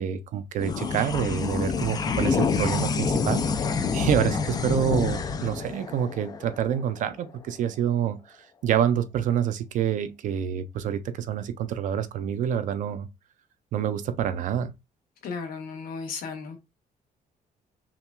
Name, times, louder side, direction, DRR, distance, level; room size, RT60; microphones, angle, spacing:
voice 1, 0.0-3.4 3.9-8.4 8.6-13.1 13.7-14.7, right 9 dB, 60° right, 0.5 m, -27 dB
sound 1, 0.6-7.3, left 5 dB, 25° left, 0.4 m, -27 dB
voice 2, 15.2-16.6, left 5 dB, 70° left, 1.1 m, -35 dB
5.8 x 2.4 x 2.2 m
cardioid pair, 180°, 15 cm